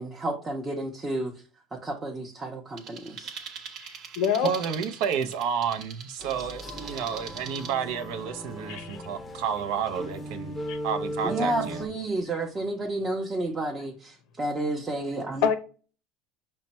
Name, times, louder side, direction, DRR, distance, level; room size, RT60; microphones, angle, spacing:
voice 1, 0.0-1.3 1.7-3.3 11.2-15.5, right 2 dB, 20° right, 0.7 m, -31 dB
sound 1, 2.8-7.7, right 6 dB, 50° right, 0.9 m, -42 dB
voice 2, 3.8-4.5 8.7-9.0 10.7-10.8 15.4-15.6, left 7 dB, 70° left, 0.6 m, -26 dB
voice 3, 4.4-10.6 10.8-11.9, right 7 dB, 70° right, 0.6 m, -30 dB
sound 2, 6.2-11.9, equal, 10° left, 0.6 m, -37 dB
5.6 x 2.1 x 4.1 m
supercardioid pair, 125°, 0 cm